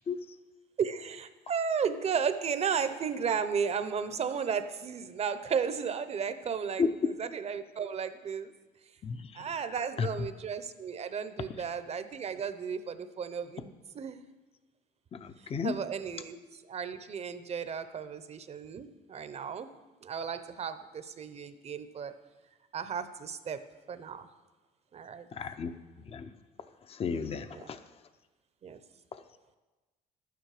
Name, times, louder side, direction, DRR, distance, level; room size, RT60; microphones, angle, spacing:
voice 1, 0.8-8.5 9.3-14.2 15.4-19.7 20.0-22.1 22.7-23.6 23.9-24.3 24.9-25.3 27.5-27.7 28.6-28.8, right 6 dB, 40° right, 11 dB, 0.7 m, -34 dB
voice 2, 6.8-7.1 9.0-9.5 10.0-10.1 15.1-15.7 25.3-25.7 26.0-26.3 26.9-27.8, left 5 dB, 35° left, 10 dB, 0.6 m, -32 dB
12.0 x 9.3 x 4.9 m, 1.2 s
cardioid pair, 110°, 17 cm